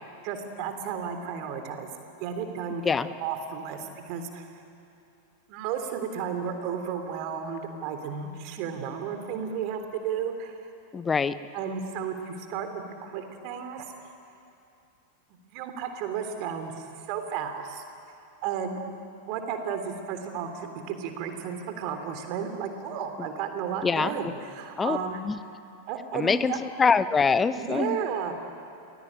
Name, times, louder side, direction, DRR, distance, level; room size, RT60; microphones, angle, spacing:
voice 1, 0.2-1.9 2.2-4.5 5.5-10.7 11.5-12.7 13.0-13.9 15.5-17.8 18.4-18.8 19.3-25.2 25.9-26.6 27.5-28.3, right 7 dB, 45° right, 6 dB, 3.5 m, -33 dB
voice 2, 10.9-11.3 23.8-24.1 24.8-25.0 25.2-25.4 26.1-28.0, left 5 dB, 15° left, 14 dB, 0.9 m, -24 dB
29.5 x 21.5 x 8.9 m, 2.7 s
figure-of-eight pair, 90°, 0 cm